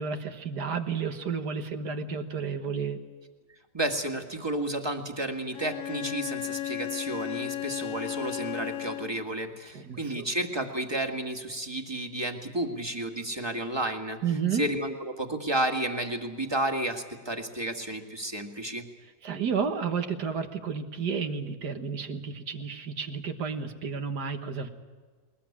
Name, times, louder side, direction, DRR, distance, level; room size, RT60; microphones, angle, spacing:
voice 1, 0.0-3.0 9.7-10.3 14.2-14.7 19.2-24.7, right 6 dB, 75° right, 6 dB, 2.0 m, -31 dB
voice 2, 3.7-14.2 14.5-18.8, right 1 dB, 15° right, 5 dB, 1.8 m, -32 dB
Bowed string instrument, 5.5-9.3, left 14 dB, 60° left, 1.1 m, -35 dB
21.0 x 20.5 x 8.6 m, 1.5 s
omnidirectional pair, 1.8 m